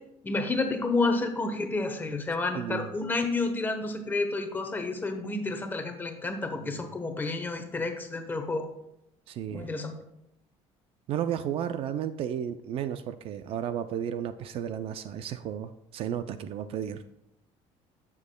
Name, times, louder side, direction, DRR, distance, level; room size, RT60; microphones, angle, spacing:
voice 1, 0.2-8.7 9.5-10.0, left 3 dB, 15° left, 6 dB, 0.9 m, -30 dB
voice 2, 2.5-2.9 6.6-6.8 9.3-9.7 11.1-17.0, right 9 dB, 50° right, 11 dB, 0.4 m, -33 dB
11.5 x 7.2 x 2.2 m, 0.80 s
cardioid pair, 150°, 12 cm